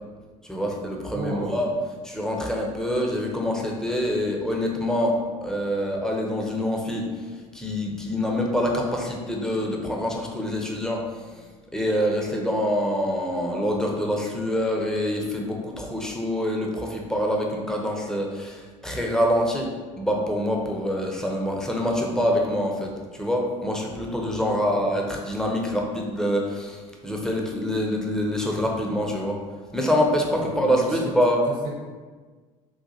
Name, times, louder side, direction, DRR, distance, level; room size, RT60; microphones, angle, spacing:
voice 1, 0.4-1.7 2.0-7.3 7.5-11.2 11.7-19.7 20.0-29.4 29.7-31.4, equal, 5° left, 0 dB, 0.7 m, -25 dB
voice 2, 1.1-1.6 24.2-24.8 30.3-31.1 31.4-31.7, right 2 dB, 70° right, -4 dB, 1.0 m, -34 dB
3.9 x 2.5 x 2.7 m, 1.4 s
hypercardioid pair, 65°, 18 cm